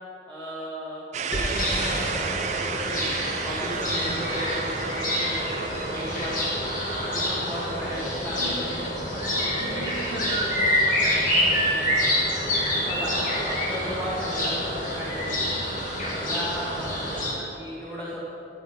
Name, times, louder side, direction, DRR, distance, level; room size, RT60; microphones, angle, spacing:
voice 1, 0.3-1.0 1.3-3.1 3.4-6.5 7.0-8.7 12.8-13.1 13.7-15.6 16.1-18.2, equal, 5° left, -9 dB, 1.5 m, -35 dB
sound 1, 1.1-11.0, right 5 dB, 35° right, 0.4 m, -34 dB
sound 2, 1.3-17.3, equal, 45° left, 1.9 m, -27 dB
voice 2, 7.4-8.9 9.5-12.4 14.6-14.8 16.5-16.9, equal, 80° left, 0 dB, 1.5 m, -38 dB
11.0 x 6.1 x 5.4 m, 2.8 s
head